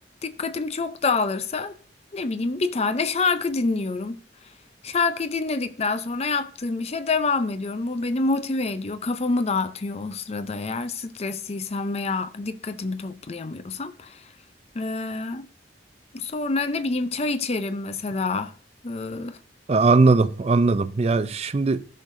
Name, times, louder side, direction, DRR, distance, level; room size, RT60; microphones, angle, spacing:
voice 1, 0.2-1.8 2.1-4.2 4.8-14.3 14.7-15.5 16.1-18.5 18.8-19.4, left 3 dB, 35° left, 0.5 m, -27 dB
voice 2, 19.7-21.8, right 3 dB, 35° right, 0.4 m, -19 dB
14.0 x 6.5 x 2.6 m
head